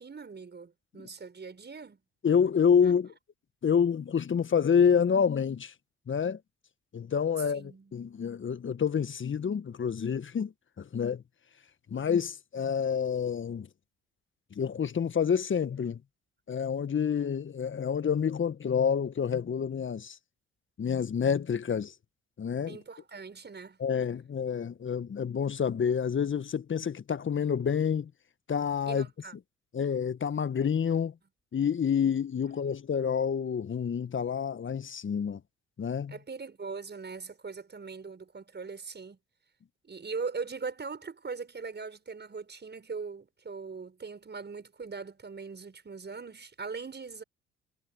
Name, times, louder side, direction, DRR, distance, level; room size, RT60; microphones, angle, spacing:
voice 1, 0.0-2.0 7.5-7.9 22.7-23.8 28.9-29.3 36.1-39.2 39.8-47.2, right 4 dB, 35° right, 6.6 m, -40 dB
voice 2, 2.2-3.1 3.6-5.7 6.1-6.4 6.9-11.2 11.9-13.7 14.5-16.0 16.5-20.2 20.8-21.9 22.4-22.8 23.8-28.1 28.5-29.1 29.7-31.1 31.5-35.4 35.8-36.1, left 7 dB, 40° left, 1.6 m, -28 dB
hypercardioid pair, 50°, 32 cm